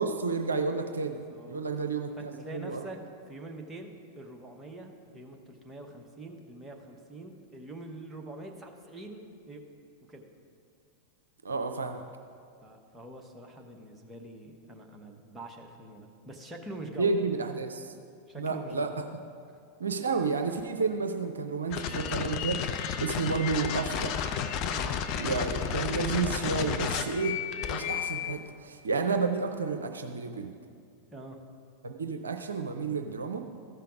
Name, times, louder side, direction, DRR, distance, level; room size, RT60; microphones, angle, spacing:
voice 1, 0.0-1.2 1.5-2.9 11.4-12.0 17.0-17.9 18.3-19.0 19.8-24.3 25.2-27.4 27.7-30.5 31.8-33.4, right 4 dB, 70° right, 6 dB, 0.5 m, -31 dB
voice 2, 1.3-1.6 2.2-3.0 3.3-9.6 10.1-10.3 12.6-17.1 18.3-19.0 24.7-24.9 31.1-31.4, right 2 dB, 10° right, 1 dB, 1.0 m, -45 dB
sound 1, 21.7-28.3, left 8 dB, 40° left, 0.5 m, -32 dB
13.5 x 5.7 x 4.9 m, 2.3 s
figure-of-eight pair, 90°, 0 cm